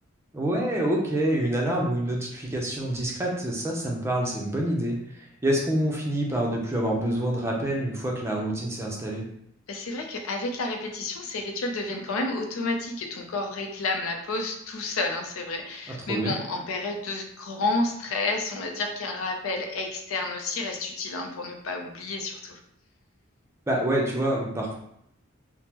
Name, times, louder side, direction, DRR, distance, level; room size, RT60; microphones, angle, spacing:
voice 1, 0.3-9.2 16.1-16.4 23.7-24.7, right 1 dB, 15° right, -1 dB, 0.5 m, -27 dB
voice 2, 9.7-22.6, left 3 dB, 80° left, 4 dB, 0.5 m, -30 dB
3.4 x 2.0 x 2.9 m, 0.74 s
head